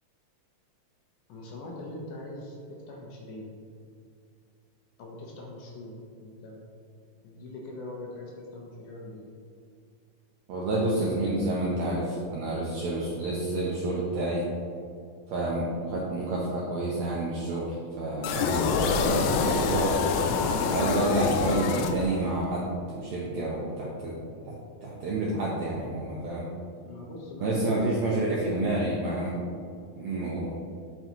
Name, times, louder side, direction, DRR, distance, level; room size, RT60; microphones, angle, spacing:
voice 1, 1.3-3.5 5.0-6.6 7.2-9.3 26.8-28.7, left 2 dB, 75° left, -2 dB, 2.1 m, -41 dB
voice 2, 10.5-14.4 15.3-19.9 20.6-24.5 24.8-26.5 27.4-29.3 30.0-30.5, right 2 dB, 80° right, -4 dB, 1.6 m, -29 dB
sound 1, 18.2-22.5, left 5 dB, 90° left, 2.4 m, -26 dB
7.8 x 5.5 x 3.0 m, 2.3 s
omnidirectional pair, 4.1 m